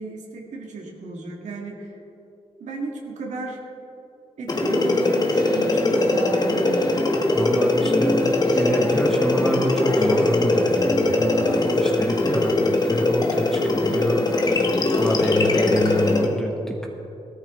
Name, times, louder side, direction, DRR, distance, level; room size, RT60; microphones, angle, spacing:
voice 1, 0.0-2.0 2.6-3.6 4.4-6.8, right 3 dB, 85° right, 0 dB, 1.9 m, -35 dB
sound 1, 4.5-16.3, left 2 dB, 35° left, 1.4 m, -21 dB
voice 2, 7.3-16.9, left 1 dB, 5° left, 0 dB, 1.4 m, -27 dB
17.0 x 13.0 x 3.8 m, 2.9 s
wide cardioid pair, 120°, 12 cm